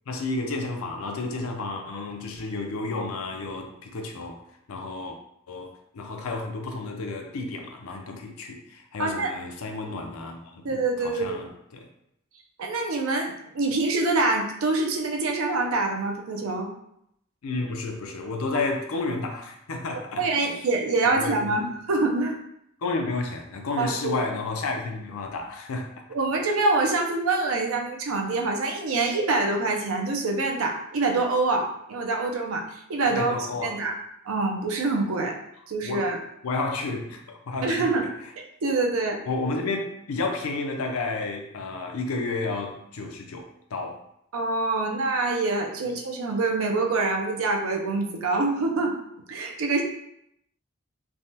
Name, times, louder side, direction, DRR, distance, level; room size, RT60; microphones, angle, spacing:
voice 1, 0.1-4.4 4.7-5.2 5.5-11.9 17.4-20.5 21.2-21.7 22.8-25.9 33.1-33.8 35.8-36.1 36.4-37.9 39.3-44.0 45.8-45.9, left 3 dB, 80° left, 4 dB, 0.5 m, -31 dB
voice 2, 9.0-9.3 10.6-11.4 12.6-16.7 20.2-22.3 23.8-24.2 26.1-32.6 32.9-33.3 33.6-34.0 34.3-35.4 35.7-36.2 37.6-38.1 38.4-39.2 44.3-48.9 49.3-49.8, right 3 dB, 75° right, 1 dB, 0.5 m, -25 dB
3.3 x 2.1 x 2.7 m, 0.76 s
head